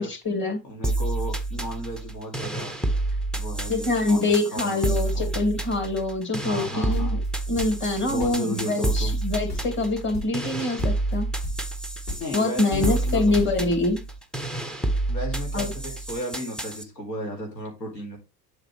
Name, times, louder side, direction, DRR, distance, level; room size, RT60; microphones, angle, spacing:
voice 1, 0.0-0.6 3.7-7.2 7.5-11.3 12.3-14.0 15.5-15.7, left 2 dB, 25° left, 5 dB, 2.5 m, -25 dB
voice 2, 0.6-2.8 3.3-5.3 6.4-7.2 8.1-9.2 12.2-13.7 15.1-18.2, equal, 85° left, 0 dB, 2.4 m, -34 dB
sound 1, 0.8-16.8, right 2 dB, ahead, 0.4 m, -29 dB
sound 2, 6.6-8.0 8.2-9.2 9.5-9.9 10.1-10.5 10.8-11.2 11.4-11.8 12.1-13.6, left 2 dB, 45° left, 2.7 m, -35 dB
7.7 x 6.0 x 3.2 m, 0.25 s
figure-of-eight pair, 75°, 50 cm